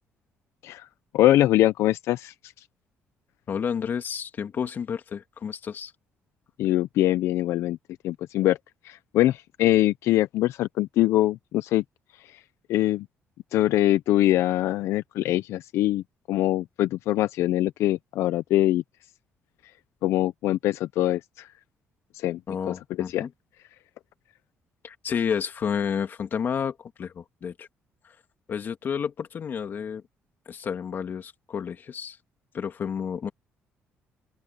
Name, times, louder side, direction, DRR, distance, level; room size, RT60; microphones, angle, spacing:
voice 1, 1.1-2.5 6.6-7.8 8.0-8.6 8.8-11.8 12.2-12.4 12.7-13.1 13.5-18.8 20.0-21.5 22.1-22.4 23.1-23.3, left 14 dB, 85° left, 0.5 m, -23 dB
voice 2, 3.5-5.9 22.5-23.3 24.8-27.7 28.0-28.2 28.5-30.0 30.5-32.2 32.5-33.3, left 7 dB, 45° left, 2.5 m, -30 dB
open air
cardioid pair, 115°, 5 cm